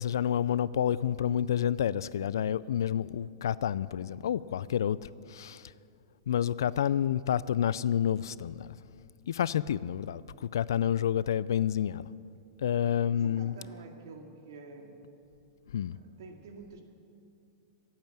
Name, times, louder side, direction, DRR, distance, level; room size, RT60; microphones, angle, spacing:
voice 1, 0.0-5.0 5.3-5.7 6.3-8.8 9.3-12.1 12.6-13.6 15.7-16.0, left 9 dB, 85° left, 0.4 m, -29 dB
voice 2, 13.1-15.1 15.9-16.8, right 4 dB, 75° right, 2.1 m, -48 dB
15.0 x 8.8 x 8.9 m
supercardioid pair, 145°, 2 cm